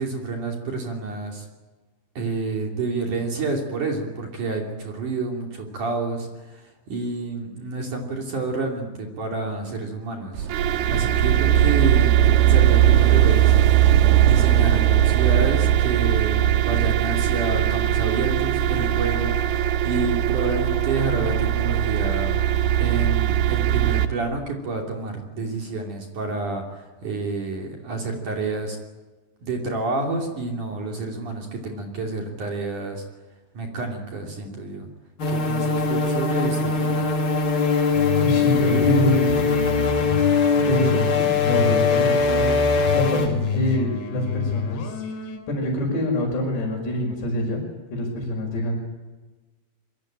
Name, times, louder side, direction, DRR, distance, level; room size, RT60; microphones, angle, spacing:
voice 1, 0.0-1.5 2.2-10.5 10.9-13.5 14.2-19.4 19.8-22.4 22.8-28.8 29.4-33.0 33.5-34.9 35.3-37.1, right 3 dB, 50° right, 1 dB, 4.1 m, -29 dB
sound 1, 10.4-24.1, right 12 dB, 70° right, 3.0 m, -19 dB
sound 2, 35.2-43.3, left 4 dB, 35° left, 2.4 m, -21 dB
sound 3, 38.0-45.4, left 7 dB, 90° left, 5.4 m, -28 dB
voice 2, 38.2-39.9 40.5-42.5 42.9-45.0 45.5-47.6 47.9-48.8, equal, 70° left, -3 dB, 7.8 m, -25 dB
26.0 x 24.0 x 9.0 m, 1.2 s
omnidirectional pair, 5.0 m